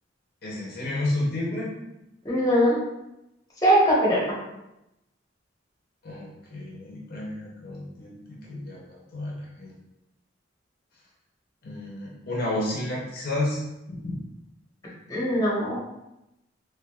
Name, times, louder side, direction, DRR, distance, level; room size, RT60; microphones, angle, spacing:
voice 1, 0.4-1.7 6.0-9.8 11.6-13.6 13.9-14.2, left 1 dB, 55° left, -4 dB, 0.7 m, -31 dB
voice 2, 2.2-2.8 3.6-4.3 15.1-15.8, equal, 20° left, -5 dB, 0.9 m, -21 dB
3.4 x 3.1 x 2.3 m, 0.91 s
head